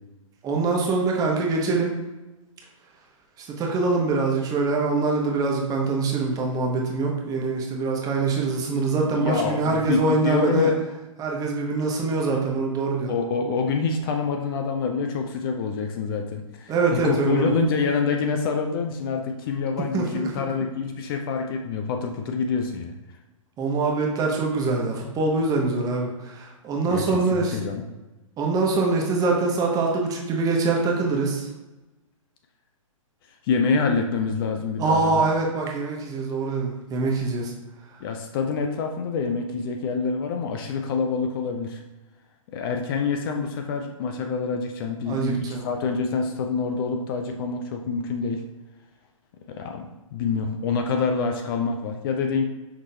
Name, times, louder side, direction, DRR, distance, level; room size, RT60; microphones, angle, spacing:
voice 1, 0.4-1.9 3.4-10.7 11.2-13.1 16.7-17.6 19.8-20.3 23.6-27.6 28.4-31.5 34.8-37.5 45.1-45.7, right 3 dB, 20° right, -1 dB, 0.8 m, -24 dB
voice 2, 9.1-10.8 12.3-12.4 13.1-22.9 26.9-27.8 33.4-35.2 38.0-41.8 42.5-48.4 49.5-52.4, left 5 dB, 40° left, 4 dB, 0.5 m, -26 dB
5.8 x 3.1 x 2.7 m, 1.1 s
hypercardioid pair, 125°, 18 cm